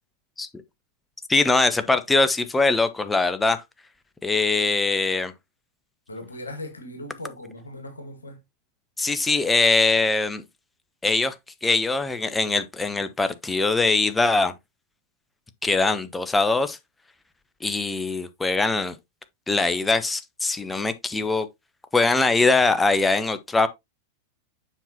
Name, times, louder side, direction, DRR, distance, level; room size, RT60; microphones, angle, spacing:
voice 1, 1.3-3.6 4.2-5.3 9.0-10.4 11.0-11.3 11.6-14.5 15.6-16.8 17.6-19.0 19.5-21.5 21.9-23.7, left 3 dB, 10° left, 0.8 m, -22 dB
voice 2, 6.1-8.4, left 1 dB, 75° left, 1.5 m, -38 dB
7.2 x 5.7 x 2.9 m
figure-of-eight pair, 90°, 0 cm